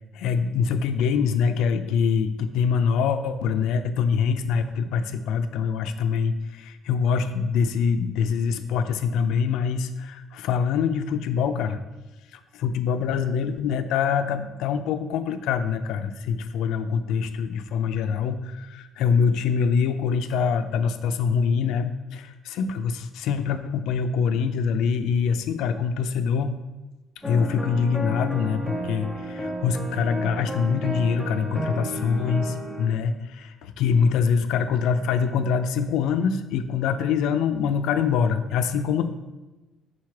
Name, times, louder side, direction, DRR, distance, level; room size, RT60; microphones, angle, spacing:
voice 1, 0.1-11.8 12.3-26.6 27.2-39.1, left 6 dB, 90° left, 9 dB, 0.4 m, -24 dB
sound 1, 27.2-32.9, right 1 dB, ahead, 0.6 m, -32 dB
4.8 x 4.1 x 5.7 m, 1.1 s
cardioid pair, 170°, 0 cm